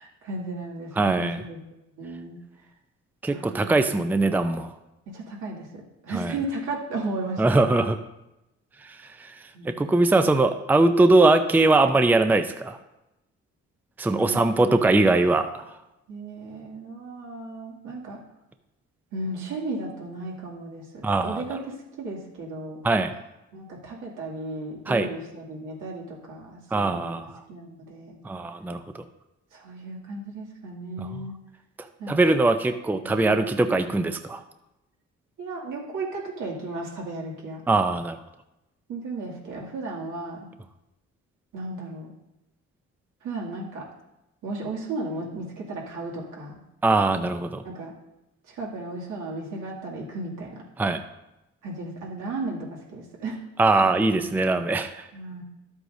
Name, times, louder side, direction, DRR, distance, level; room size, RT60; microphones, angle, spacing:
voice 1, 0.0-1.6 1.9-2.4 3.3-3.8 5.1-7.4 9.5-9.9 14.2-15.2 16.1-18.2 19.1-22.8 23.5-28.2 29.5-31.4 32.0-32.3 33.0-33.4 35.4-37.6 38.9-40.5 41.5-42.1 43.2-43.9 44.4-46.6 47.6-47.9 48.5-50.6 51.6-53.4 55.1-55.4, right 2 dB, 80° right, -3 dB, 2.5 m, -35 dB
voice 2, 1.0-1.4 3.2-4.7 6.1-6.3 7.4-8.0 9.2-9.3 9.7-12.8 14.0-15.5 21.0-21.4 22.8-23.1 24.9-25.1 26.7-27.4 28.2-29.0 31.0-31.1 32.1-34.4 37.7-38.2 46.8-47.6 50.8-51.0 53.6-55.1, right 2 dB, 5° right, 8 dB, 0.5 m, -21 dB
12.0 x 8.0 x 2.7 m, 0.92 s
cardioid pair, 90°, 30 cm